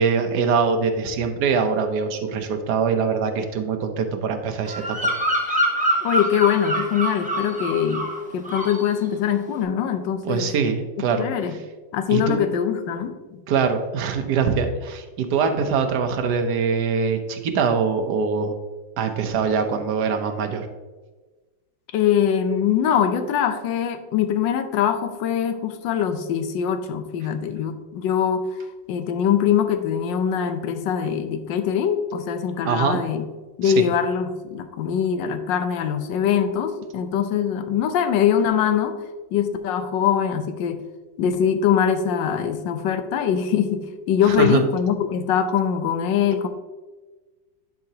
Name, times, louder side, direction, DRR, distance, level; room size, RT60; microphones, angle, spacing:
voice 1, 0.0-5.1 10.2-11.3 12.1-12.4 13.5-18.5 19.0-20.7 32.6-33.0 33.6-33.8 44.3-44.6, right 5 dB, 65° right, 6 dB, 1.2 m, -23 dB
Bird vocalization bird call bird song, 4.6-8.2 8.4-8.9, equal, 5° right, 0.6 m, -25 dB
voice 2, 6.0-8.1 8.3-10.5 11.0-11.6 11.9-13.4 21.9-28.5 28.9-33.3 33.6-39.0 39.3-40.8 41.2-46.5, left 8 dB, 80° left, 9 dB, 1.3 m, -23 dB
10.5 x 4.9 x 2.8 m, 1.2 s
omnidirectional pair, 2.0 m